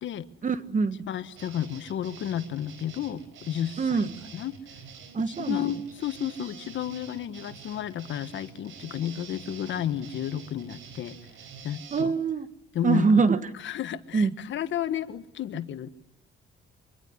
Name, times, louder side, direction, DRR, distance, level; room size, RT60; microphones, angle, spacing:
voice 1, 0.4-1.0 3.8-4.1 5.1-5.7 11.9-12.5 12.8-13.5 14.1-14.3, right 5 dB, 40° right, 12 dB, 1.7 m, -24 dB
voice 2, 1.1-4.6 5.4-11.2 11.6-12.1 12.7-13.3 13.6-15.9, left 10 dB, 70° left, 12 dB, 1.5 m, -32 dB
sound 1, 1.3-12.0, right 6 dB, 80° right, 4.5 m, -47 dB
25.0 x 24.0 x 9.9 m, 0.79 s
cardioid pair, 90°, 20 cm